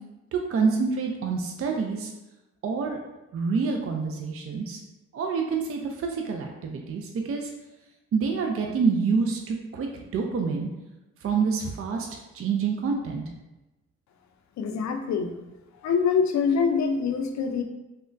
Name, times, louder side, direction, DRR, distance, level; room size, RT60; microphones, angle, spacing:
voice 1, 0.3-2.1 2.6-3.0 3.3-4.8 5.1-7.5 8.1-10.7 11.2-12.1 12.3-13.2, right 5 dB, 50° right, 2 dB, 0.4 m, -27 dB
voice 2, 14.6-15.3 15.8-17.6, left 6 dB, 65° left, 5 dB, 0.5 m, -24 dB
3.4 x 2.2 x 2.5 m, 1.0 s
supercardioid pair, 50°, 30 cm